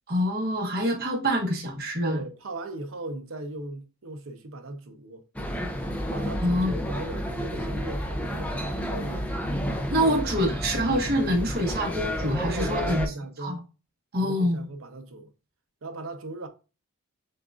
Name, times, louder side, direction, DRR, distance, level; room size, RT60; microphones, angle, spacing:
voice 1, 0.1-2.2 6.4-6.7 9.9-13.0 13.4-13.6 14.1-14.7, equal, 45° right, 1.3 m, -25 dB
voice 2, 2.0-5.2 6.1-9.3 10.0-10.2 10.9-11.0 12.5-13.6 14.2-15.3 15.8-16.5, right 2 dB, 65° right, 0.7 m, -37 dB
sound 1, 5.3-13.1, equal, 5° left, 0.5 m, -31 dB
6.4 x 2.5 x 2.4 m
head